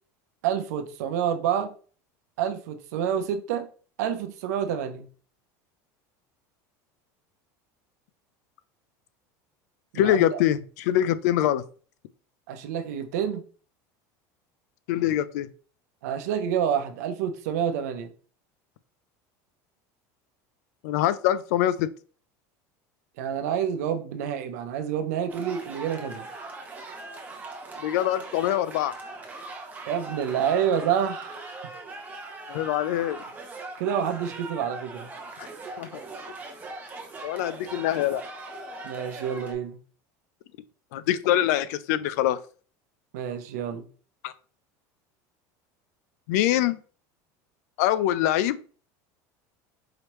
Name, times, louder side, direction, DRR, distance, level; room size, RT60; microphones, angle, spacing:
voice 1, 0.4-1.7 2.4-3.7 4.0-5.1 9.9-10.4 12.5-13.4 16.0-18.1 23.2-26.3 29.9-31.5 33.8-35.1 38.8-39.8 43.1-43.9, right 8 dB, 90° right, 0.7 m, -28 dB
voice 2, 10.0-11.6 14.9-15.5 20.8-21.9 27.8-28.9 32.5-33.2 35.4-35.5 35.8-36.0 37.2-38.2 40.9-42.4 44.2-44.3 46.3-46.8 47.8-48.6, left 12 dB, 80° left, 0.4 m, -24 dB
sound 1, 25.3-39.5, right 2 dB, 20° right, 0.9 m, -40 dB
4.9 x 3.1 x 3.0 m
cardioid pair, 150°, 9 cm